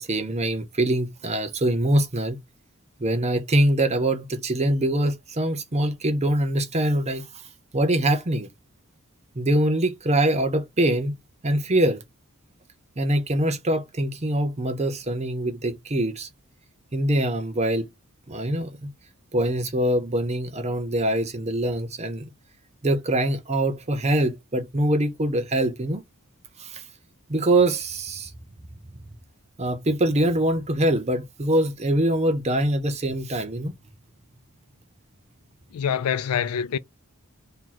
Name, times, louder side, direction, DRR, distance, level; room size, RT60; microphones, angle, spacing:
voice 1, 0.0-2.4 3.0-7.2 7.7-8.5 9.4-11.1 11.4-12.0 13.0-16.3 16.9-17.9 18.3-18.9 19.3-22.3 22.8-26.0 26.6-26.8 27.3-28.3 29.6-33.7, right 1 dB, 30° right, 0.7 m, -23 dB
voice 2, 35.7-36.8, left 8 dB, 90° left, 0.4 m, -25 dB
3.0 x 2.8 x 3.8 m
head